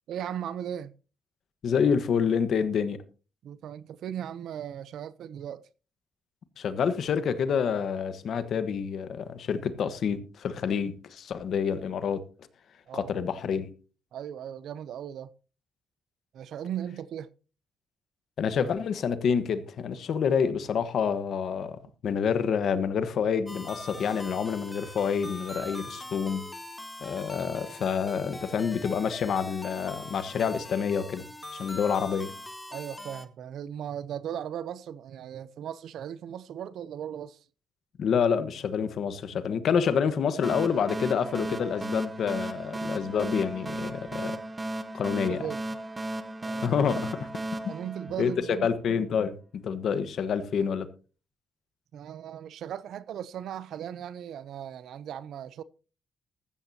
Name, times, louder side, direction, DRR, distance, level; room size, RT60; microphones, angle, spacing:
voice 1, 0.1-0.9 3.4-5.6 12.9-13.1 14.1-15.3 16.3-17.3 32.7-37.4 45.3-45.6 46.4-46.7 47.7-48.7 51.9-55.6, right 9 dB, 75° right, 0.6 m, -37 dB
voice 2, 1.6-3.0 6.6-12.2 12.9-13.7 18.4-26.5 27.0-31.2 31.5-32.3 38.0-44.4 44.9-45.4 46.6-47.3 47.6-47.7 48.2-48.3 48.6-50.9, left 7 dB, 60° left, 1.2 m, -28 dB
sound 1, 23.5-33.3, left 1 dB, 10° left, 1.0 m, -42 dB
sound 2, 40.4-48.8, right 1 dB, 15° right, 0.9 m, -35 dB
14.5 x 13.5 x 2.8 m
cardioid pair, 150°, 0 cm